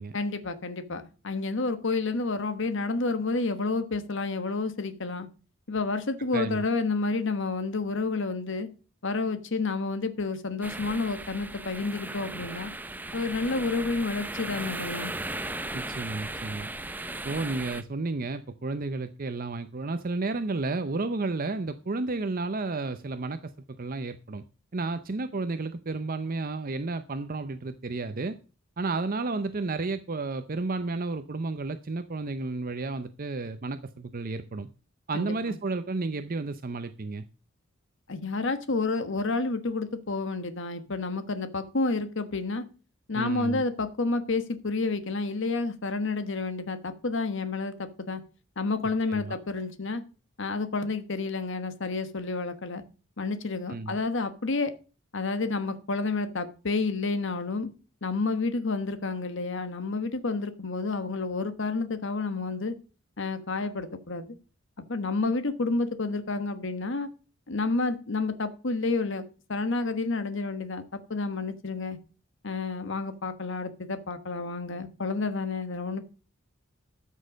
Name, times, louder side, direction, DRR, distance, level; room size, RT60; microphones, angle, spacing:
voice 1, 0.1-5.3 5.7-8.7 9.0-12.7 13.1-15.1 35.1-35.6 38.1-42.6 43.1-48.2 48.6-50.0 50.4-52.8 53.2-54.7 55.1-57.7 58.0-62.8 63.2-64.4 64.9-67.1 67.5-69.2 69.5-70.8 71.1-72.0 72.4-76.0, left 3 dB, 65° left, 1.3 m, -30 dB
voice 2, 6.3-6.7 15.7-16.7 17.2-23.5 23.8-24.4 24.7-28.4 28.8-34.7 35.1-37.3 43.1-43.6 49.1-49.4 53.7-54.0, right 3 dB, 45° right, 0.7 m, -32 dB
sound 1, 10.6-17.8, right 2 dB, 10° right, 0.7 m, -37 dB
13.0 x 6.5 x 5.2 m
head